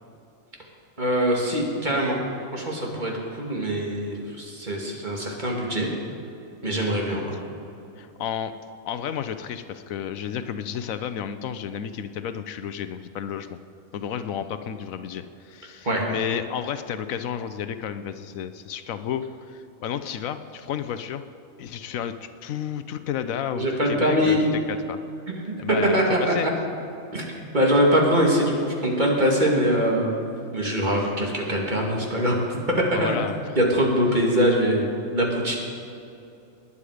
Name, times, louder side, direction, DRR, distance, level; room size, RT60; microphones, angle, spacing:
voice 1, 1.0-2.2 2.5-5.9 6.6-7.4 15.8-16.1 23.5-24.5 25.7-26.5 27.1-27.3 27.5-30.1 30.5-33.1 33.6-35.6, equal, 35° right, -1 dB, 2.4 m, -23 dB
voice 2, 8.0-8.5 8.8-13.6 13.9-21.2 21.6-24.4 24.7-25.0 25.6-26.0 26.3-26.5 31.0-31.1 32.9-33.3, left 8 dB, 80° left, 11 dB, 1.1 m, -31 dB
20.0 x 9.9 x 5.0 m, 2.7 s
omnidirectional pair, 1.4 m